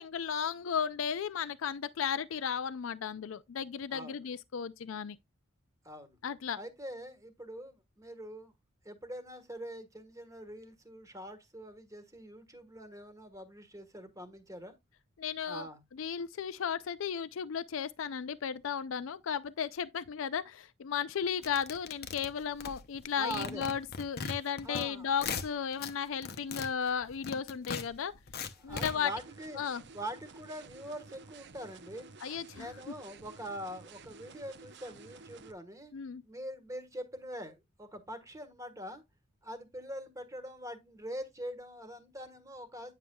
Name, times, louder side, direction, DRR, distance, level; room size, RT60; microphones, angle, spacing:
voice 1, 0.0-5.2 6.2-6.6 15.2-15.7 16.0-28.1 28.6-29.1 29.6-29.8 32.2-32.7 35.9-36.2, left 7 dB, 70° left, 0.4 m, -35 dB
voice 2, 3.9-4.2 5.8-6.2 6.6-8.5 8.8-14.7 15.4-15.8 23.2-23.7 24.6-25.1 28.6-29.6 29.9-32.1 32.5-35.9 36.2-39.0 39.4-42.9, equal, 15° right, 1.4 m, -43 dB
sound 1, 21.4-23.1 23.3-24.8 25.1-25.9 26.2-28.9, left 5 dB, 50° left, 0.8 m, -39 dB
sound 2, 28.7-35.5, right 4 dB, 55° right, 0.7 m, -52 dB
9.4 x 6.6 x 2.3 m
head